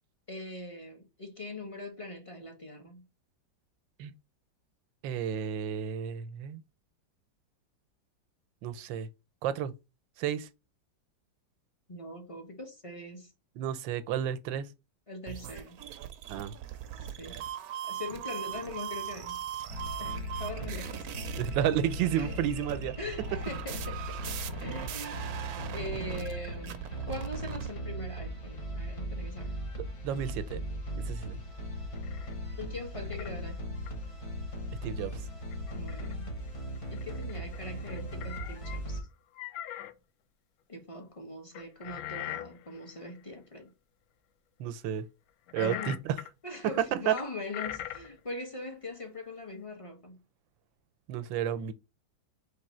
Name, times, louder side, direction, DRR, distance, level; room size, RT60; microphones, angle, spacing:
voice 1, 0.3-3.1 11.9-13.3 15.1-15.8 17.0-17.5 17.8-19.4 20.0-21.1 22.1-22.3 23.0-25.3 25.7-29.6 32.6-33.8 35.7-36.3 36.9-39.1 40.7-43.7 45.5-46.0 46.4-50.2, left 2 dB, 25° left, 0.9 m, -42 dB
voice 2, 5.0-6.6 8.6-9.1 9.4-9.7 10.2-10.5 13.6-14.7 16.3-16.5 21.4-23.0 30.0-30.6 31.1-31.4 34.8-35.1 44.6-45.1 45.5-46.2 47.1-47.2 51.1-51.7, right 9 dB, 90° right, 1.3 m, -31 dB
sound 1, 15.3-27.7, right 10 dB, 70° right, 0.9 m, -40 dB
sound 2, 19.7-39.0, equal, 55° left, 0.3 m, -38 dB
sound 3, 32.0-32.4 33.1-33.3 33.9-34.0 35.5-36.1 36.5-36.6 36.8-39.0 39.3-39.9 41.5-43.2 45.5-46.3 47.2-48.2, left 12 dB, 90° left, 1.3 m, -41 dB
3.8 x 3.2 x 4.2 m
omnidirectional pair, 2.0 m